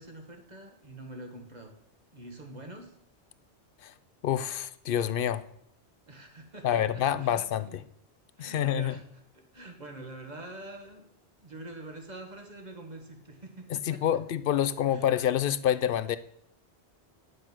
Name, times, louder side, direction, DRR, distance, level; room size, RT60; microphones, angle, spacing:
voice 1, 0.0-1.7 2.1-2.9 6.1-7.8 8.4-9.0 9.3-11.1 11.4-14.2 14.9-15.1, right 2 dB, 40° right, 3 dB, 1.7 m, -45 dB
voice 2, 4.2-5.4 6.6-7.8 8.4-9.0 13.7-16.2, left 10 dB, 60° left, 15 dB, 0.7 m, -27 dB
10.5 x 6.4 x 6.1 m, 0.73 s
omnidirectional pair, 1.1 m